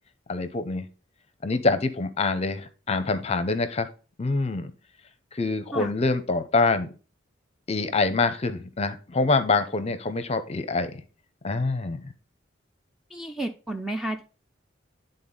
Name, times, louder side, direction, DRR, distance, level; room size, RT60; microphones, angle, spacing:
voice 1, 0.3-0.9 1.4-3.9 4.2-4.7 5.3-6.9 7.7-11.0 11.4-12.1, left 3 dB, 35° left, 11 dB, 0.7 m, -25 dB
voice 2, 13.1-14.3, right 1 dB, ahead, 5 dB, 0.5 m, -31 dB
10.5 x 3.9 x 3.8 m, 0.34 s
head